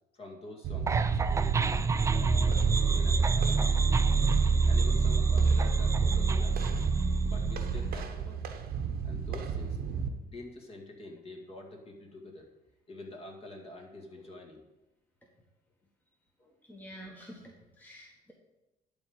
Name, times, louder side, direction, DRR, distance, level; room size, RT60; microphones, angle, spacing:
voice 1, 0.1-1.6 2.1-4.0 4.7-6.9 7.2-8.5 9.0-12.5 12.9-14.6 16.4-16.6, left 2 dB, 35° left, 1 dB, 2.2 m, -47 dB
sound 1, 0.6-10.1, right 6 dB, 65° right, 1.0 m, -35 dB
sound 2, 0.9-8.0, right 4 dB, 15° right, 0.4 m, -26 dB
voice 2, 16.7-18.3, equal, 10° left, -1 dB, 1.4 m, -48 dB
11.5 x 3.9 x 7.2 m, 0.99 s
cardioid pair, 110°, 17 cm